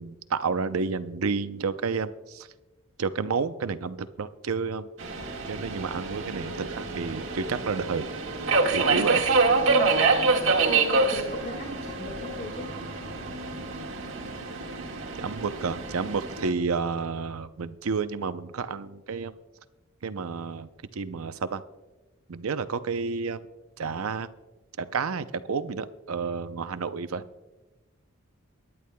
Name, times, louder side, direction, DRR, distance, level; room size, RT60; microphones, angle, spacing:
voice 1, 0.0-2.5 3.0-4.9 5.5-8.0 8.7-9.2 15.1-19.3 20.0-21.6 22.3-23.5 23.8-24.3 24.8-27.2, right 5 dB, 80° right, 12 dB, 0.6 m, -30 dB
Subway metro underground, 5.0-16.5, right 3 dB, 60° right, 1.8 m, -26 dB
voice 2, 8.8-9.1 9.7-10.0 10.7-12.7, left 2 dB, 50° left, -1 dB, 1.9 m, -38 dB
22.5 x 11.0 x 2.2 m, 1.1 s
head